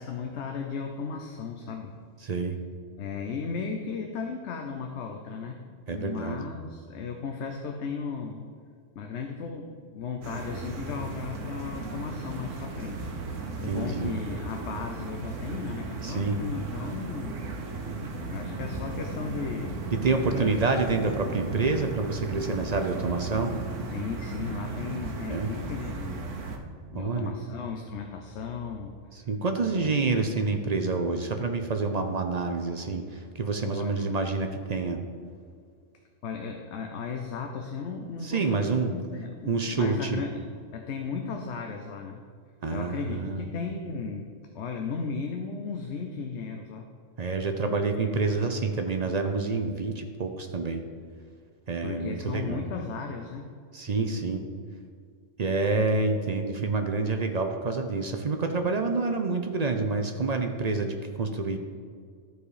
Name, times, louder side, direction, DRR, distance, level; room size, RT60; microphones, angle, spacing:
voice 1, 0.0-1.9 3.0-8.4 9.0-13.1 13.6-17.4 18.3-19.8 20.3-20.5 22.4-22.5 23.9-26.3 26.7-29.3 29.6-29.9 33.6-34.1 36.2-40.4 40.7-42.2 42.7-46.9 47.6-48.3 51.8-53.5, left 5 dB, 70° left, 3 dB, 1.0 m, -36 dB
voice 2, 2.2-2.6 5.9-6.5 13.7-14.2 16.0-16.4 19.9-23.5 25.3-25.5 26.9-27.3 29.3-33.0 33.4-35.0 38.2-38.9 39.5-40.2 42.6-43.5 47.2-50.8 51.7-52.6 53.7-54.4 55.4-61.6, right 3 dB, 45° right, 5 dB, 0.6 m, -28 dB
sound 1, 10.2-26.6, right 3 dB, 90° right, 1.3 m, -36 dB
13.5 x 4.8 x 4.9 m, 2.1 s
omnidirectional pair, 1.2 m